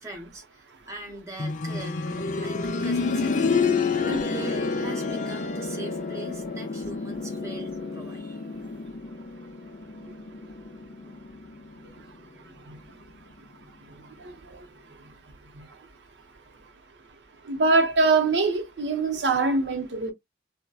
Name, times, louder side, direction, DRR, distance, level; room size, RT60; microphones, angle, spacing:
voice 1, 0.0-3.5 4.0-8.4, right 1 dB, 20° right, 0.8 m, -41 dB
sound 1, 1.4-12.2 13.5-13.6, left 4 dB, 45° left, 0.4 m, -29 dB
voice 2, 14.0-14.7 15.5-15.7 17.4-20.1, right 3 dB, 90° right, 0.7 m, -24 dB
2.6 x 2.1 x 2.2 m
head